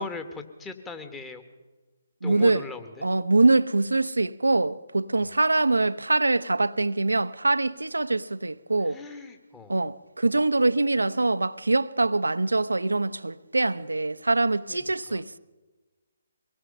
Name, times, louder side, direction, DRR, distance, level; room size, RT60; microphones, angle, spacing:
voice 1, 0.0-1.4 2.2-3.1 5.2-5.3 8.8-9.7 14.7-15.2, left 3 dB, 10° left, 1.7 m, -40 dB
voice 2, 2.2-2.6 3.0-9.0 9.7-15.4, right 2 dB, 85° right, 0.8 m, -24 dB
23.5 x 20.0 x 5.5 m
figure-of-eight pair, 140°, 0 cm